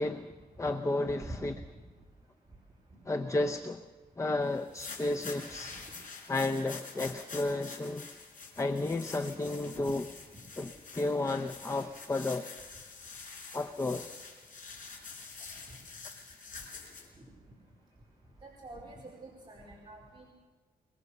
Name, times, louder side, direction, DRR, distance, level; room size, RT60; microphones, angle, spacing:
voice 1, 0.0-1.6 3.1-3.8 4.2-5.8 6.3-8.1 8.6-10.0 10.6-12.5 13.5-14.1, left 2 dB, 20° left, 6 dB, 0.7 m, -32 dB
voice 2, 1.2-1.5 9.6-10.0 18.4-20.3, right 1 dB, 30° right, -4 dB, 4.6 m, -46 dB
sound 1, 4.5-17.1, left 4 dB, 55° left, 4.8 m, -47 dB
24.0 x 22.5 x 6.7 m, 1.4 s
wide cardioid pair, 145°, 16 cm